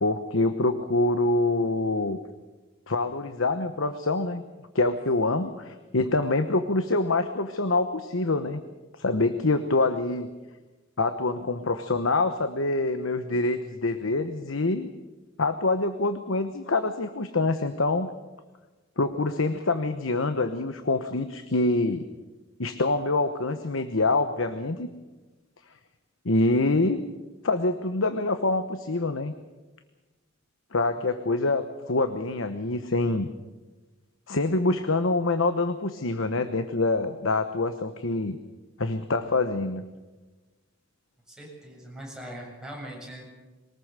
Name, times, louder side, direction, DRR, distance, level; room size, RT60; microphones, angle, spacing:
voice 1, 0.0-2.2 2.9-4.4 4.7-8.6 9.0-10.3 11.0-14.9 15.4-18.1 19.0-22.0 22.6-24.9 26.2-27.0 27.4-29.3 30.7-33.3 34.3-38.4 38.8-39.8, left 2 dB, 90° left, 9 dB, 1.1 m, -25 dB
voice 2, 41.3-43.2, right 1 dB, 5° right, -2 dB, 7.4 m, -41 dB
22.5 x 19.5 x 6.8 m, 1.2 s
head